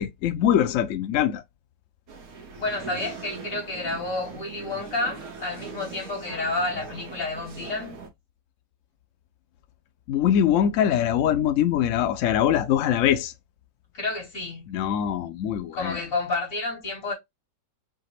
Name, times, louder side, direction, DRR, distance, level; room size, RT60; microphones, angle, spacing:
voice 1, 0.0-1.4 10.1-13.3 14.7-16.1, left 10 dB, 75° left, 0.7 m, -23 dB
sound 1, 2.1-8.1, right 5 dB, 60° right, 1.4 m, -41 dB
voice 2, 2.6-8.0 13.9-14.6 15.7-17.1, left 2 dB, 50° left, 3.3 m, -30 dB
5.0 x 2.9 x 3.0 m
omnidirectional pair, 1.9 m